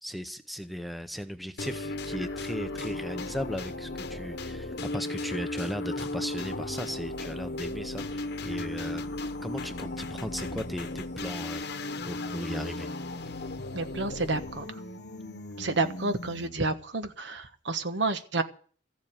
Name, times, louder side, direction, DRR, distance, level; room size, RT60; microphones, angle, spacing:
voice 1, 0.0-11.6 12.0-12.9, equal, ahead, 0.7 m, -37 dB
sound 1, 1.6-16.7, left 2 dB, 55° left, 1.1 m, -36 dB
voice 2, 13.7-14.8 15.6-18.4, right 3 dB, 65° right, 1.3 m, -30 dB
14.5 x 7.4 x 8.8 m
head